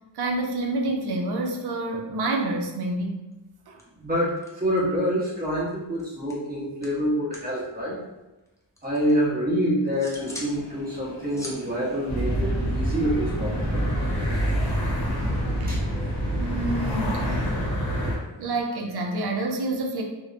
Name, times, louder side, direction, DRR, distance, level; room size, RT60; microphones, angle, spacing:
voice 1, 0.1-3.2 3.7-3.8 15.6-15.7 16.4-17.8 18.4-20.0, right 2 dB, 60° right, 1 dB, 0.6 m, -28 dB
sound 1, 3.3-3.5 3.8-5.0 5.3-7.6 7.8-9.1 9.6-10.6 10.9-13.0, left 1 dB, 5° left, 0.5 m, -44 dB
voice 2, 3.9-8.0 8.8-14.1 15.7-15.8, equal, 20° right, -6 dB, 1.0 m, -26 dB
sound 2, 10.1-17.7, left 1 dB, 80° left, 0.8 m, -41 dB
sound 3, 12.1-18.2, equal, 60° left, 0.9 m, -26 dB
2.7 x 2.1 x 2.5 m, 1.0 s
cardioid pair, 80°, 45 cm